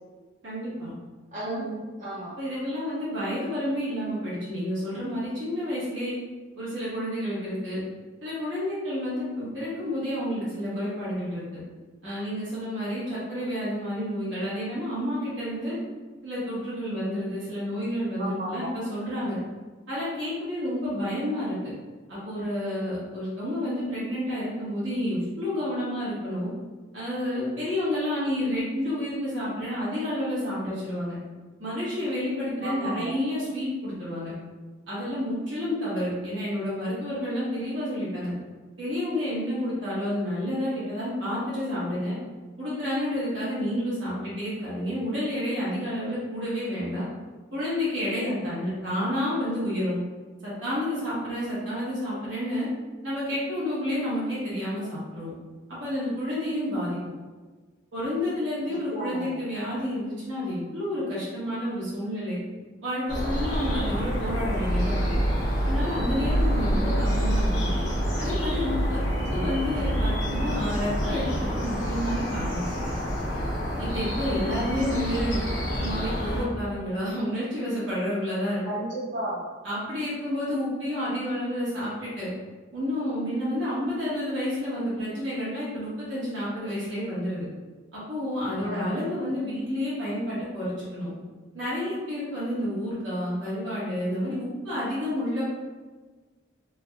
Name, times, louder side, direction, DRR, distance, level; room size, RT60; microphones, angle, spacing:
voice 1, 0.4-0.9 1.4-1.7 2.4-6.1 6.6-7.8 8.2-11.6 12.0-15.8 16.2-19.4 19.9-21.5 22.1-26.5 26.9-31.1 31.6-34.3 34.9-38.3 38.8-42.2 42.6-47.0 47.5-50.0 50.4-52.7 53.0-55.3 55.8-57.0 57.9-62.4 62.8-65.1 65.6-67.7 68.2-72.6 73.8-75.4 75.7-78.6 79.6-82.3 82.7-87.5 87.9-91.1 91.5-95.5, equal, 70° right, -9 dB, 1.1 m, -30 dB
voice 2, 1.3-1.7 2.0-2.3 18.1-18.7 32.6-33.1 58.7-59.4 69.3-69.6 78.6-79.4 88.6-89.1, right 1 dB, 40° right, -10 dB, 1.1 m, -34 dB
sound 1, 63.1-76.5, equal, 80° left, 0.7 m, -27 dB
3.2 x 2.2 x 2.3 m, 1.4 s
head